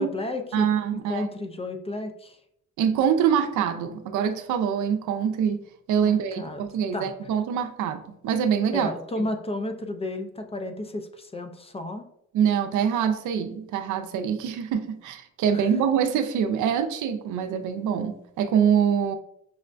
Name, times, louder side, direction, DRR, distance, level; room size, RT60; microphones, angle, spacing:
voice 1, 0.0-2.4 6.0-6.6 6.9-7.1 8.7-12.0 15.5-15.7, left 2 dB, 20° left, 6 dB, 0.4 m, -32 dB
voice 2, 0.5-1.3 2.8-5.6 5.9-8.9 9.2-9.3 12.3-19.2, right 8 dB, 80° right, 7 dB, 0.5 m, -24 dB
6.2 x 2.2 x 2.5 m, 0.75 s
cardioid pair, 90°, 30 cm